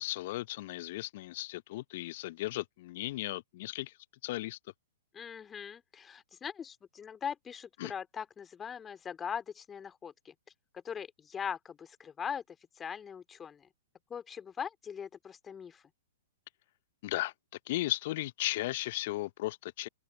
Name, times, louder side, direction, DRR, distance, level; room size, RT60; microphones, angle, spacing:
voice 1, 0.0-3.9 4.2-4.6 7.8-7.9 17.0-17.3 17.7-19.9, left 17 dB, 50° left, 0.7 m, -35 dB
voice 2, 5.1-10.3 10.8-13.7 14.1-15.9, left 7 dB, 15° left, 2.5 m, -41 dB
open air
figure-of-eight pair, 110°, 0 cm